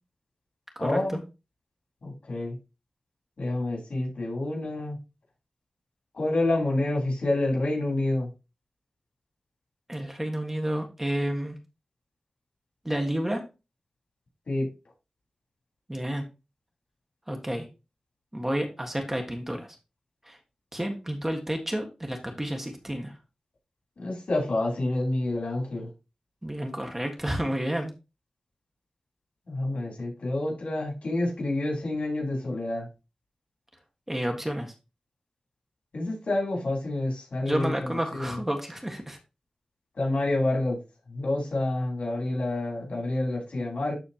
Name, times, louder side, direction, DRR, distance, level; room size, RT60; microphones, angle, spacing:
voice 1, 0.8-1.2 2.0-2.6 3.4-5.0 6.1-8.3 14.5-14.7 24.0-25.9 29.5-32.9 35.9-38.4 39.9-40.8 41.1-43.9, left 2 dB, 70° left, -1 dB, 4.3 m, -28 dB
voice 2, 9.9-11.6 12.8-13.4 15.9-16.2 17.3-17.7 18.3-19.7 20.2-20.4 20.7-23.1 26.4-27.9 34.1-34.7 37.4-39.2, right 1 dB, 15° right, 3 dB, 1.6 m, -30 dB
12.5 x 4.2 x 2.9 m, 0.27 s
wide cardioid pair, 90°, 2 cm